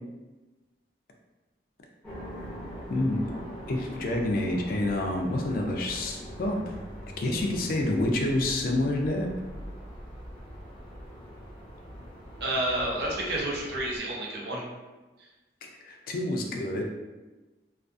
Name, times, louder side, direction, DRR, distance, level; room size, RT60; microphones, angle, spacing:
sound 1, 2.0-14.0, equal, 10° left, 0.6 m, -42 dB
voice 1, 2.9-3.2 3.7-6.6 7.2-9.3 15.8-16.8, left 1 dB, 55° left, 2 dB, 0.4 m, -28 dB
voice 2, 12.4-14.7, right 1 dB, 65° right, -3 dB, 0.6 m, -30 dB
2.3 x 2.3 x 2.5 m, 1.2 s
head